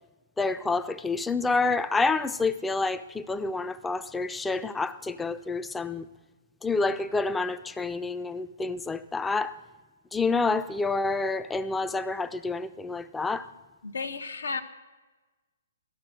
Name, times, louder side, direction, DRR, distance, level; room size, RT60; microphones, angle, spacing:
voice 1, 0.4-6.1 6.6-9.6 10.1-13.5, left 3 dB, 10° left, 11 dB, 0.4 m, -28 dB
voice 2, 13.8-14.6, left 4 dB, 90° left, 7 dB, 1.0 m, -33 dB
13.0 x 6.0 x 7.4 m, 1.2 s
hypercardioid pair, 140°, 0 cm